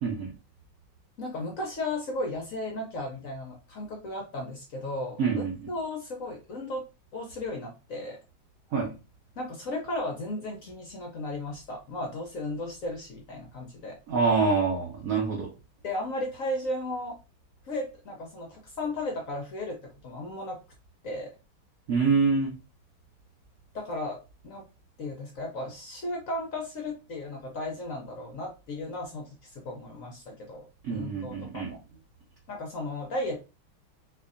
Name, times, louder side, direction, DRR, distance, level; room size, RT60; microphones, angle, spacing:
voice 1, 0.0-0.3 5.2-5.7 8.7-8.9 14.1-15.5 21.9-22.6 30.8-31.7, right 4 dB, 60° right, 1.0 m, -26 dB
voice 2, 1.2-6.8 7.1-8.2 9.4-14.0 15.8-17.2 17.6-19.8 20.0-20.6 21.0-21.3 23.7-24.6 25.0-30.6 30.9-31.8 32.5-33.4, left 1 dB, 60° left, 0.9 m, -35 dB
4.4 x 2.7 x 2.5 m
omnidirectional pair, 2.2 m